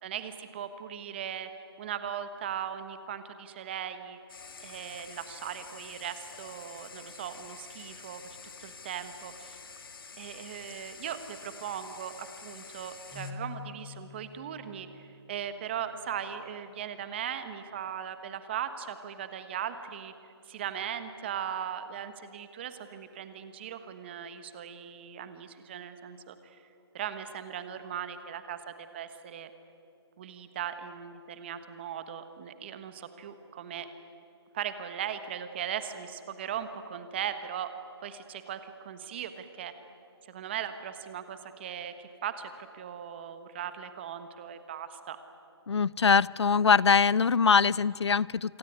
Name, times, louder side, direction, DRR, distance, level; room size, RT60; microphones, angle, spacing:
voice 1, 0.0-1.5 1.8-4.2 4.6-8.2 8.6-9.6 10.1-20.1 20.5-26.6 26.9-29.5 30.2-33.9 34.5-37.7 38.0-39.7 40.2-45.2, right 9 dB, 25° right, 10 dB, 1.4 m, -38 dB
sound 1, 4.3-13.3, left 5 dB, 55° left, 2.6 m, -48 dB
Keyboard (musical), 13.1-16.0, left 3 dB, 5° right, 4.7 m, -46 dB
voice 2, 45.7-48.6, left 6 dB, 75° left, 24 dB, 0.6 m, -23 dB
27.0 x 22.5 x 9.6 m, 2.7 s
hypercardioid pair, 165°, 14 cm